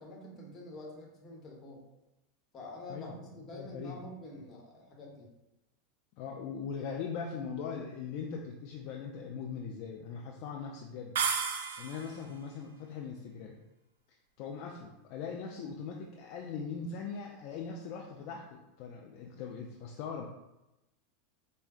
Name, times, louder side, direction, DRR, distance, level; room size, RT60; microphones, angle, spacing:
voice 1, 0.0-1.8 2.5-5.3, left 1 dB, 35° left, -2 dB, 1.0 m, -47 dB
voice 2, 2.9-3.2 3.5-4.0 6.2-11.2 11.8-13.6 14.4-20.3, left 6 dB, 60° left, 0 dB, 0.4 m, -40 dB
sound 1, 11.1-12.2, right 6 dB, 80° right, 0.3 m, -32 dB
4.6 x 2.1 x 2.4 m, 0.95 s
hypercardioid pair, 105°, 0 cm